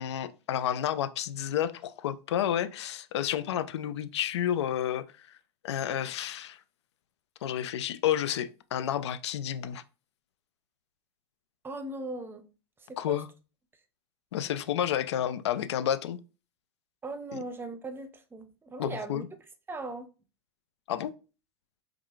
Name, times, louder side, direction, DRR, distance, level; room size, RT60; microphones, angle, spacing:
voice 1, 0.0-5.3 5.6-6.6 7.4-9.8 13.0-13.3 14.3-16.2 18.8-19.3 20.9-21.1, left 10 dB, 75° left, 0.4 m, -30 dB
voice 2, 11.6-12.5 12.8-13.2 17.0-19.2 19.7-20.1, right 2 dB, 15° right, 0.6 m, -39 dB
4.7 x 2.4 x 2.4 m
hypercardioid pair, 95°, 14 cm